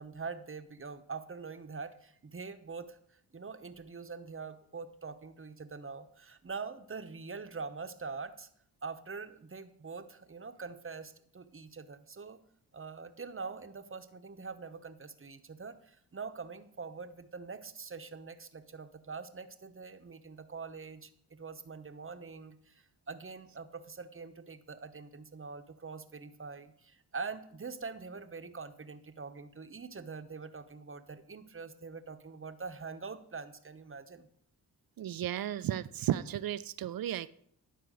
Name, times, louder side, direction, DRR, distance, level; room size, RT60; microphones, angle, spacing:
voice 1, 0.0-3.0 3.3-8.5 8.8-12.4 12.7-34.3, right 4 dB, 30° right, 9 dB, 1.0 m, -44 dB
voice 2, 35.0-37.3, right 11 dB, 55° right, 16 dB, 0.6 m, -34 dB
11.0 x 4.5 x 6.4 m, 0.67 s
supercardioid pair, 40°, 44 cm